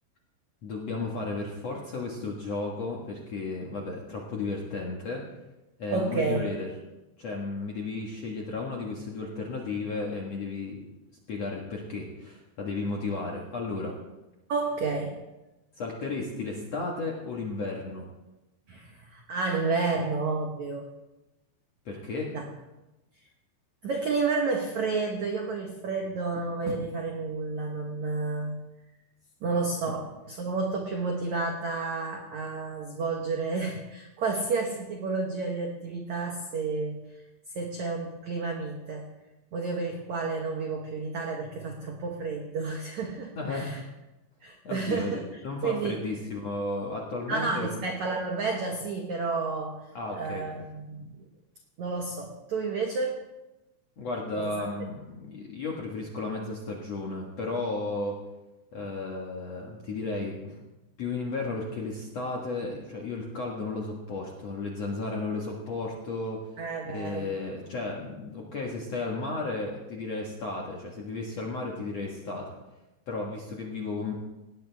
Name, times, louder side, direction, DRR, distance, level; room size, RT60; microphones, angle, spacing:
voice 1, 0.6-5.2 5.8-6.7 7.2-10.8 11.3-14.0 15.8-18.1 21.9-22.3 43.4-43.8 44.6-47.7 49.9-50.5 54.0-58.2 58.7-60.6 61.0-66.5 66.9-72.5 73.1-74.1, left 3 dB, 60° left, -2 dB, 1.8 m, -34 dB
voice 2, 5.9-6.4 14.5-15.2 18.7-20.9 22.3-22.4 23.8-28.6 29.4-37.2 37.5-39.1 39.5-43.8 44.4-45.2 45.6-46.0 47.3-49.8 50.1-51.2 51.8-53.2 54.4-54.5 66.6-67.3, right 4 dB, 80° right, 2 dB, 1.6 m, -31 dB
18.5 x 17.5 x 3.5 m, 1.0 s
omnidirectional pair, 5.4 m